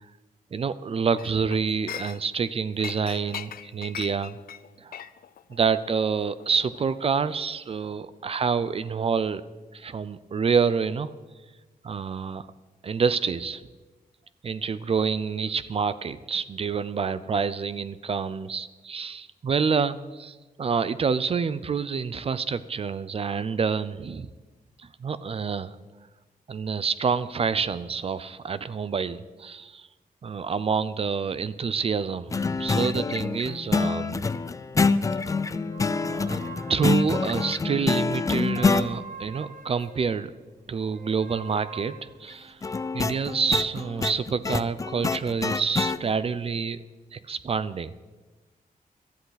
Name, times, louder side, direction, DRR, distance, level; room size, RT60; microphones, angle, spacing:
voice 1, 0.5-4.4 4.8-4.9 5.5-9.4 9.7-11.1 11.8-12.5 12.8-13.6 14.4-24.3 24.8-25.8 26.5-29.9 30.2-34.2 35.9-36.4 36.7-40.3 40.7-42.6 42.9-46.8 47.1-47.9, right 5 dB, 40° right, 15 dB, 0.5 m, -27 dB
Chink clink, 1.2-2.5 2.8-7.4 7.7-7.9, left 10 dB, 90° left, 0.5 m, -40 dB
sound 1, 32.3-38.9 42.6-46.0, left 4 dB, 20° left, 0.4 m, -26 dB
sound 2, 32.9-35.0 35.4-40.2 40.9-43.5, right 4 dB, 65° right, 1.4 m, -45 dB
18.0 x 13.0 x 4.0 m, 1.2 s
wide cardioid pair, 170°, 15 cm